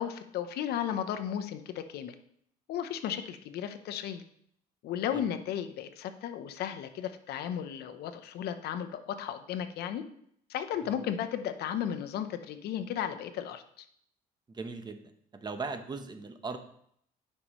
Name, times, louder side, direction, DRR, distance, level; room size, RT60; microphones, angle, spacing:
voice 1, 0.0-2.1 2.7-4.2 4.8-10.0 10.5-13.9, left 9 dB, 70° left, 9 dB, 0.8 m, -34 dB
voice 2, 14.5-15.0 15.4-16.6, right 4 dB, 25° right, 8 dB, 0.9 m, -38 dB
9.7 x 5.5 x 3.1 m, 0.67 s
cardioid pair, 110°, 17 cm